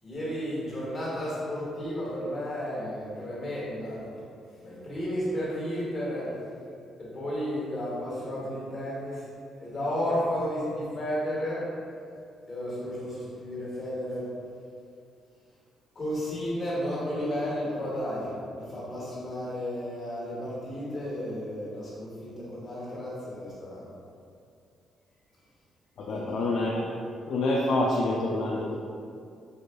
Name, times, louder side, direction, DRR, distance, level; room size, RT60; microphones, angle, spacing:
voice 1, 0.0-4.0 4.6-6.3 7.0-9.2 9.6-11.6 12.5-14.3 15.9-23.9 26.1-26.5, equal, 40° left, -8 dB, 1.5 m, -33 dB
voice 2, 26.0-26.9 27.3-28.8, left 2 dB, 70° left, -4 dB, 0.3 m, -27 dB
4.8 x 2.4 x 2.2 m, 2.4 s
cardioid pair, 90°, 0 cm